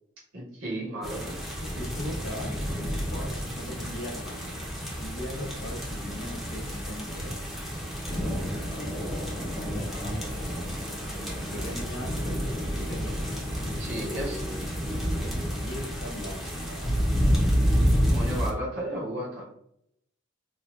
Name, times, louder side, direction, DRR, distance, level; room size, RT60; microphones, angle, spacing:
voice 1, 0.3-1.4 13.8-14.4 18.1-19.5, right 1 dB, 90° right, -6 dB, 1.2 m, -34 dB
sound 1, 1.0-18.5, equal, ahead, 0.6 m, -29 dB
voice 2, 1.6-2.6 3.0-4.7 5.0-7.4 8.4-10.3 11.3-13.0 14.0-14.7 15.5-17.1, left 1 dB, 75° left, -1 dB, 0.9 m, -40 dB
4.1 x 2.4 x 2.4 m, 0.72 s
head